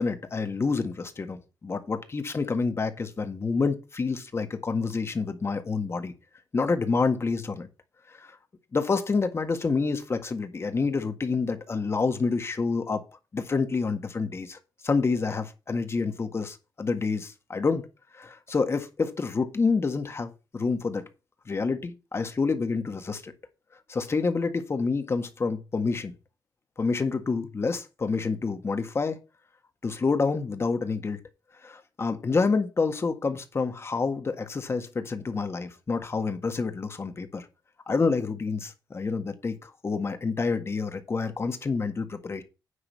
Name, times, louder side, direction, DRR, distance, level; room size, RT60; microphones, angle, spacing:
voice 1, 0.0-6.1 6.5-7.7 8.2-8.4 8.7-13.0 13.3-14.6 14.8-17.9 18.1-21.0 21.5-23.3 23.9-26.1 26.8-29.2 29.8-31.2 31.6-37.5 37.9-42.4, left 4 dB, 35° left, 1.8 m, -28 dB
9.8 x 3.9 x 7.4 m
cardioid pair, 80°, 8 cm